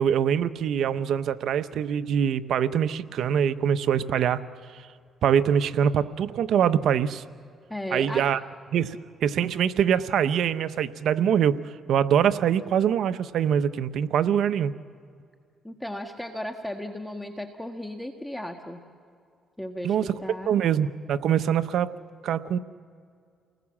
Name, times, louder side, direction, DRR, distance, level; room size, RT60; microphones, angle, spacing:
voice 1, 0.0-4.4 4.7-4.8 5.2-7.2 7.9-8.4 8.7-11.6 11.9-14.7 19.8-20.1 20.5-21.9 22.2-22.6, right 8 dB, 70° right, 13 dB, 0.8 m, -24 dB
voice 2, 7.7-8.3 15.6-18.8 19.6-20.6, left 1 dB, 5° left, 4 dB, 1.5 m, -35 dB
30.0 x 20.0 x 7.3 m, 2.3 s
cardioid pair, 90°, 0 cm